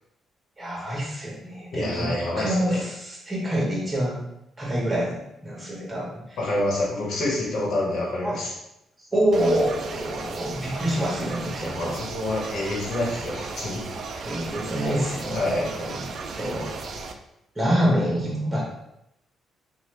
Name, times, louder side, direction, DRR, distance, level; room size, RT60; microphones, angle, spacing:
voice 1, 0.6-4.2 4.6-6.1 8.2-8.4 9.1-11.9 14.2-16.0 16.4-16.7 17.6-18.6, equal, 10° right, -4 dB, 1.1 m, -26 dB
voice 2, 1.7-2.8 6.4-8.5 11.6-13.8 15.3-15.7, left 1 dB, 70° left, -4 dB, 1.1 m, -27 dB
sound 1, 9.3-17.1, right 4 dB, 55° right, 0.3 m, -35 dB
2.8 x 2.3 x 3.3 m, 0.83 s
cardioid pair, 90°, 0 cm